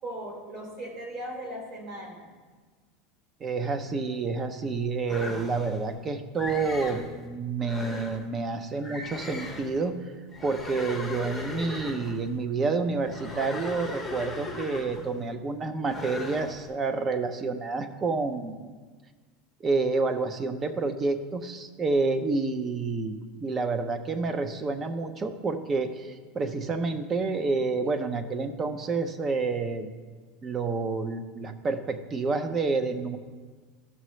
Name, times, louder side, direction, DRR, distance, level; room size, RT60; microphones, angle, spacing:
voice 1, 0.0-2.3, right 1 dB, 40° right, -1 dB, 2.8 m, -38 dB
voice 2, 3.4-10.0 10.4-18.7 19.6-29.9 30.4-33.2, right 3 dB, 20° right, 9 dB, 0.6 m, -29 dB
sound 1, 5.1-5.9 6.4-7.1 7.6-8.3 8.8-9.8 10.3-12.3 13.0-15.2 15.8-16.6, left 2 dB, 5° right, 0.9 m, -38 dB
14.0 x 6.6 x 3.1 m, 1.4 s
supercardioid pair, 155°, 0 cm